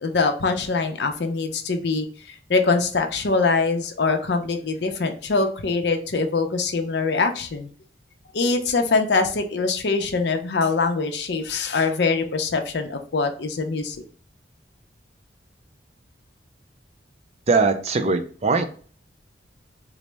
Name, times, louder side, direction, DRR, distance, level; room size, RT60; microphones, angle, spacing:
voice 1, 0.0-7.7 8.3-14.0, left 4 dB, 65° left, 5 dB, 0.5 m, -23 dB
voice 2, 17.5-18.6, right 4 dB, 35° right, 7 dB, 0.4 m, -20 dB
4.0 x 2.0 x 3.3 m, 0.43 s
head